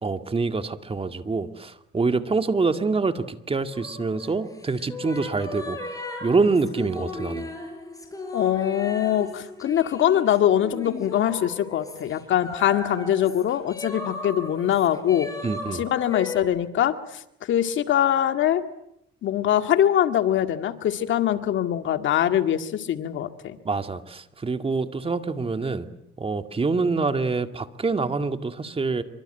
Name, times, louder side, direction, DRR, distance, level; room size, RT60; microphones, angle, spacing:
voice 1, 0.0-5.8 6.2-7.5 15.4-15.9 23.6-25.9 26.2-29.0, right 4 dB, 30° right, 8 dB, 2.1 m, -26 dB
sound 1, 3.7-16.4, left 2 dB, 15° left, 7.2 m, -37 dB
voice 2, 8.3-15.3 15.8-17.2 17.5-18.6 19.2-23.6, left 11 dB, 75° left, 9 dB, 2.0 m, -23 dB
26.5 x 24.5 x 9.1 m, 0.79 s
cardioid pair, 90°, 20 cm